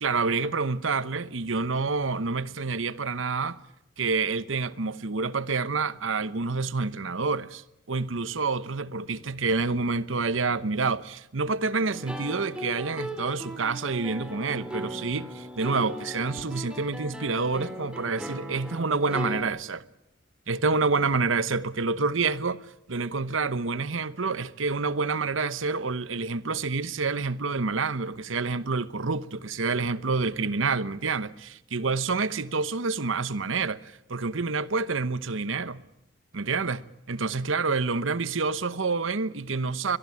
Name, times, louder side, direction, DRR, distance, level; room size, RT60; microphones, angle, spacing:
voice 1, 0.0-3.6 4.0-7.6 7.9-19.8 20.5-22.6 22.9-35.8 36.3-40.0, right 4 dB, 80° right, 1.0 m, -28 dB
sound 1, 11.8-19.4, equal, 5° right, 3.5 m, -38 dB
23.0 x 22.0 x 8.6 m
head